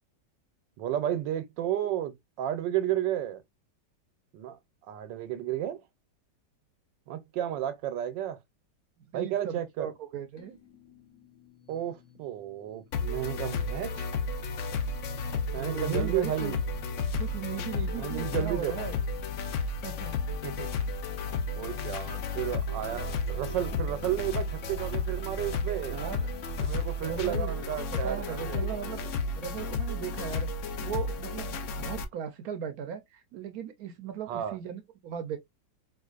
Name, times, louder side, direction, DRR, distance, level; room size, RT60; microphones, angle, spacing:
voice 1, 0.8-3.4 4.3-4.6 4.9-5.8 7.1-8.4 9.1-9.9 11.7-14.1 15.5-16.6 17.9-18.9 20.4-20.7 21.5-26.0 26.6-28.9 34.3-34.6, right 11 dB, 90° right, 1.3 m, -32 dB
voice 2, 9.1-10.6 15.5-16.5 17.2-19.0 19.8-20.2 22.9-23.0 25.9-26.3 27.0-27.5 27.9-29.0 29.4-30.5 30.8-35.4, right 8 dB, 70° right, 0.9 m, -37 dB
sound 1, 10.4-26.7, equal, 50° left, 1.3 m, -55 dB
sound 2, 12.9-32.0, left 3 dB, 75° left, 0.7 m, -32 dB
4.5 x 2.4 x 2.3 m
omnidirectional pair, 1.9 m